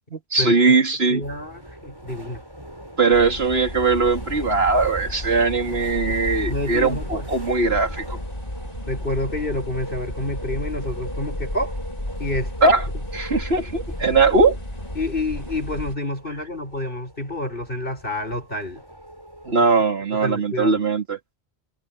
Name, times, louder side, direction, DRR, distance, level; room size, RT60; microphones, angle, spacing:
voice 1, 0.1-1.2 3.0-8.2 12.6-12.9 13.1-14.6 19.4-21.2, right 3 dB, 65° right, 3.1 m, -20 dB
voice 2, 1.1-2.4 6.1-6.2 6.5-7.3 8.9-11.7 12.2-12.7 15.0-18.8 19.6-19.7 20.2-20.8, left 1 dB, 55° left, 7.5 m, -28 dB
sound 1, 1.2-19.6, equal, 20° right, 7.4 m, -41 dB
sound 2, 3.1-16.0, left 1 dB, 35° left, 4.6 m, -33 dB
omnidirectional pair, 1.1 m